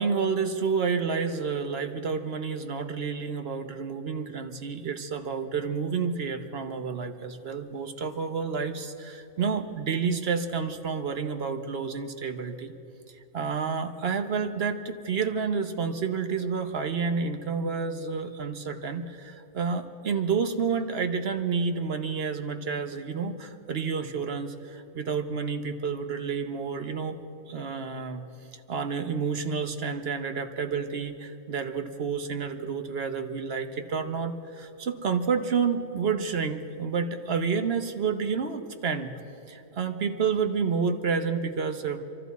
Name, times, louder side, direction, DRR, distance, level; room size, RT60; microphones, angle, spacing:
voice 1, 0.0-12.7 13.3-28.2 28.5-39.1 39.5-42.0, right 5 dB, 50° right, 7 dB, 0.9 m, -29 dB
26.0 x 13.0 x 4.1 m, 2.9 s
omnidirectional pair, 1.5 m